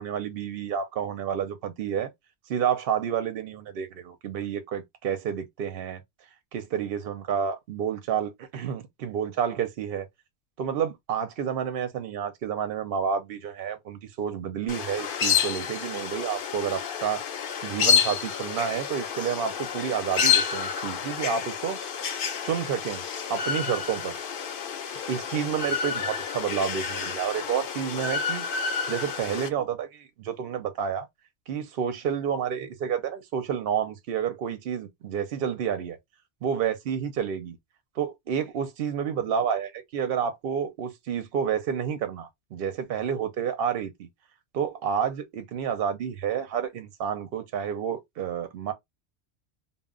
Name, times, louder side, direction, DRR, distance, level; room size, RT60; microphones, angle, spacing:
voice 1, 0.0-2.1 2.5-6.0 6.5-10.1 10.6-17.2 17.6-21.8 22.4-23.0 23.3-24.2 25.1-28.5 28.9-31.1 31.5-36.0 36.4-37.6 38.0-44.1 44.5-48.7, right 8 dB, 65° right, 0.7 m, -30 dB
sound 1, 14.7-29.5, left 7 dB, 60° left, 0.7 m, -29 dB
2.1 x 2.0 x 3.5 m
omnidirectional pair, 1.1 m